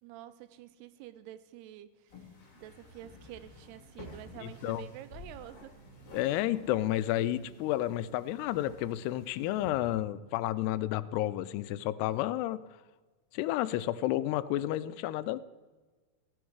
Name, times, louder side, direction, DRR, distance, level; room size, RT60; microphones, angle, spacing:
voice 1, 0.0-5.8, right 12 dB, 85° right, 14 dB, 2.7 m, -49 dB
sound 1, 2.1-9.7, left 3 dB, 35° left, 2.3 m, -53 dB
Singing, 3.6-12.5, right 6 dB, 40° right, 1.7 m, -59 dB
voice 2, 6.1-12.6 13.3-15.4, left 14 dB, 85° left, 15 dB, 2.6 m, -31 dB
15.0 x 10.0 x 4.7 m, 1.3 s
omnidirectional pair, 4.7 m